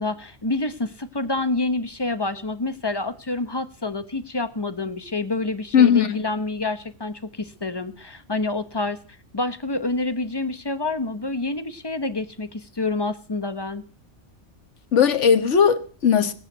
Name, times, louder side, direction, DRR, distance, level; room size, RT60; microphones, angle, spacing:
voice 1, 0.0-9.0 9.3-13.8, left 2 dB, 20° left, 1.0 m, -28 dB
voice 2, 5.7-6.2 14.9-16.3, left 7 dB, 75° left, 1.5 m, -17 dB
18.0 x 8.2 x 9.1 m
omnidirectional pair, 1.2 m